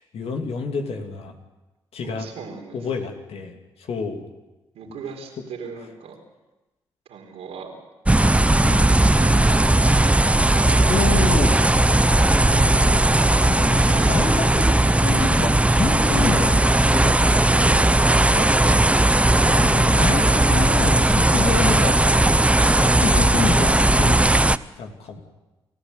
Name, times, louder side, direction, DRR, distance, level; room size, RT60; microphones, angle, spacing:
voice 1, 0.0-1.3 1.9-2.3 2.7-4.2 8.6-8.9 10.9-11.5 12.4-13.1 13.4-17.7 19.4-22.2 22.7-25.2, left 4 dB, 70° left, 3 dB, 3.1 m, -29 dB
voice 2, 2.0-2.8 4.7-6.2 7.1-7.7 8.8-9.9 10.4-10.9 13.8-14.4, right 5 dB, 80° right, 2 dB, 4.3 m, -38 dB
sound 1, 8.1-24.6, right 1 dB, 10° right, 0.7 m, -17 dB
28.0 x 14.5 x 8.3 m, 1.1 s
hypercardioid pair, 45°, 11 cm